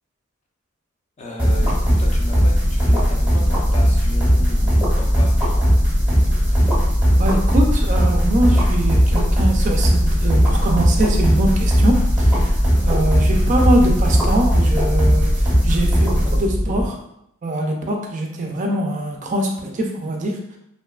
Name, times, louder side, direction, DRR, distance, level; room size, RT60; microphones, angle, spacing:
voice 1, 1.2-5.6 6.1-6.5 12.8-12.9, left 1 dB, 35° left, -1 dB, 0.4 m, -36 dB
sound 1, 1.4-16.9, equal, 10° right, 0.7 m, -17 dB
voice 2, 7.2-17.0 17.4-20.6, right 1 dB, 40° right, 2 dB, 0.3 m, -23 dB
2.5 x 2.2 x 2.3 m, 0.78 s
head